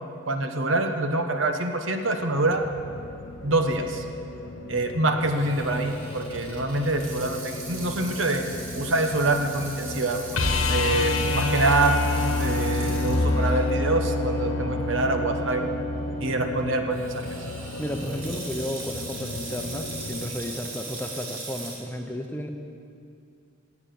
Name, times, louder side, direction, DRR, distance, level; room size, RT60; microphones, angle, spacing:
voice 1, 0.3-2.6 3.4-4.0 4.7-8.5 8.7-10.2 10.7-12.0 12.4-15.7 16.2-17.2, right 2 dB, 70° right, 5 dB, 1.1 m, -25 dB
sound 1, 2.2-20.3, left 2 dB, 75° left, 0.7 m, -38 dB
Water tap faucet / Sink (filling or washing), 5.3-13.7 14.2-14.3 15.0-15.3 16.9-21.8, right 3 dB, 90° right, 3.0 m, -40 dB
sound 2, 10.3-16.3 18.8-18.9, left 2 dB, 90° left, 1.2 m, -26 dB
voice 2, 17.8-22.5, equal, 10° left, 4 dB, 0.7 m, -33 dB
17.0 x 8.5 x 7.0 m, 2.5 s
head